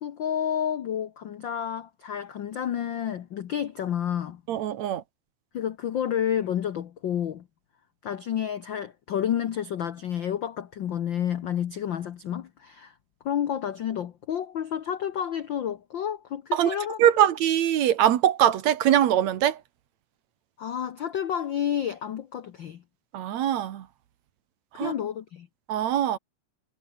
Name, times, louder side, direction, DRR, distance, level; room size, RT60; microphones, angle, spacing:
voice 1, 0.0-4.4 5.5-7.4 8.0-12.9 13.2-17.2 20.6-22.8 24.7-25.5, left 9 dB, 70° left, 1.1 m, -30 dB
voice 2, 4.5-5.0 16.5-19.6 23.1-23.8 24.8-24.9 25.7-26.2, right 11 dB, 65° right, 2.4 m, -22 dB
omnidirectional pair, 3.5 m